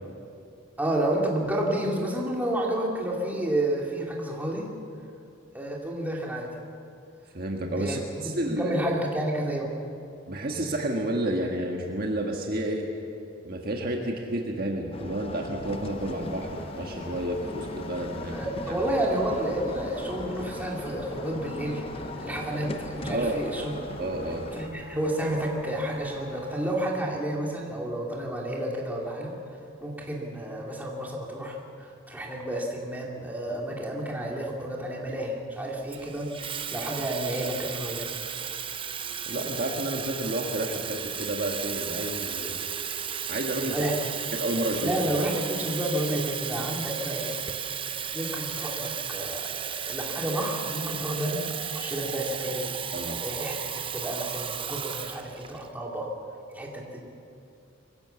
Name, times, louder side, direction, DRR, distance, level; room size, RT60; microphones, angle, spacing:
voice 1, 0.8-4.7 5.5-6.5 7.8-9.7 18.3-23.7 24.5-38.2 43.6-43.9 44.8-47.4 48.1-51.4 51.7-52.7 53.2-53.6 53.9-56.1 56.5-57.0, right 1 dB, 10° right, -3 dB, 2.8 m, -30 dB
voice 2, 7.3-8.8 10.3-12.9 13.4-18.4 18.7-18.8 23.1-23.3 24.0-24.5 39.3-42.5 43.3-43.7 44.3-44.9 52.9-53.2, right 1 dB, 45° right, 1 dB, 1.6 m, -30 dB
sound 1, 14.9-24.7, left 1 dB, 25° left, 0.8 m, -38 dB
sound 2, 15.6-26.7, left 1 dB, 85° left, 3.3 m, -45 dB
Water tap faucet / Fill (with liquid), 35.9-55.7, right 8 dB, 25° right, 0.6 m, -34 dB
23.5 x 15.5 x 7.1 m, 2.5 s
head